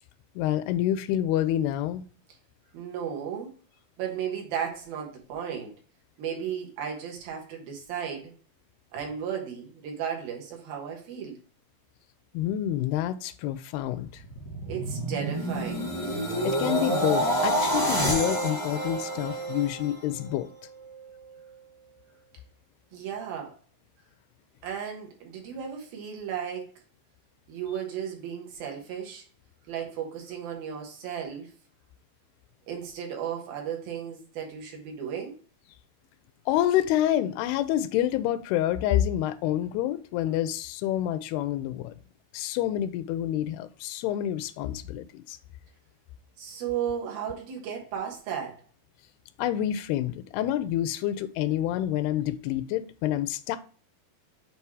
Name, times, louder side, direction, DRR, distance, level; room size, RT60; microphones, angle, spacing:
voice 1, 0.4-2.0 12.3-14.2 16.4-20.5 36.5-41.9 42.3-45.4 49.4-53.6, left 12 dB, 85° left, 12 dB, 2.5 m, -28 dB
voice 2, 2.7-3.5 4.0-5.7 6.2-8.3 8.9-11.4 14.7-16.0 22.9-23.6 24.6-26.7 27.5-29.2 29.7-31.5 32.7-35.4 46.4-48.6, right 8 dB, 70° right, 1 dB, 3.0 m, -35 dB
sound 1, 14.1-20.3 20.8-21.1, right 1 dB, 15° left, 0.7 m, -28 dB
7.9 x 3.0 x 4.6 m, 0.40 s
omnidirectional pair, 4.5 m